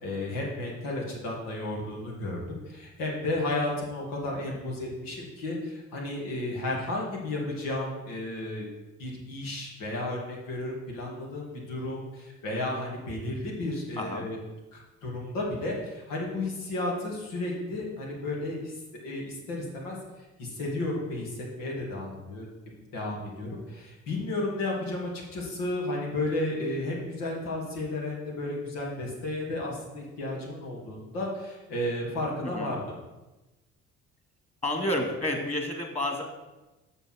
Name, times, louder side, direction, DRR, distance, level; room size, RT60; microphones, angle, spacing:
voice 1, 0.0-8.7 9.0-14.4 14.7-18.7 19.0-20.0 20.4-22.5 22.9-33.0, left 2 dB, 80° left, -1 dB, 2.6 m, -33 dB
voice 2, 14.0-14.3 32.4-32.8 34.6-36.2, left 1 dB, 20° left, 2 dB, 2.6 m, -30 dB
7.0 x 6.8 x 6.6 m, 1.1 s
supercardioid pair, 65°, 32 cm